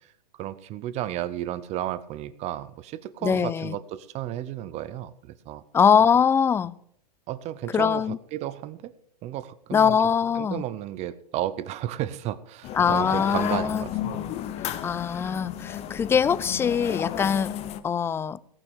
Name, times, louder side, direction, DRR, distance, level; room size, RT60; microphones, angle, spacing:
voice 1, 0.4-5.6 7.3-8.0 8.3-8.9 9.2-9.9 10.4-14.2, right 12 dB, 30° right, 16 dB, 0.7 m, -33 dB
voice 2, 3.2-3.8 5.7-6.7 7.7-8.2 9.7-10.6 12.7-13.9 14.8-17.6 17.8-18.4, left 7 dB, 10° left, 18 dB, 0.4 m, -22 dB
sound 1, 12.6-17.8, left 10 dB, 30° left, 0.9 m, -33 dB
17.5 x 5.9 x 6.4 m, 0.65 s
hypercardioid pair, 120°, 21 cm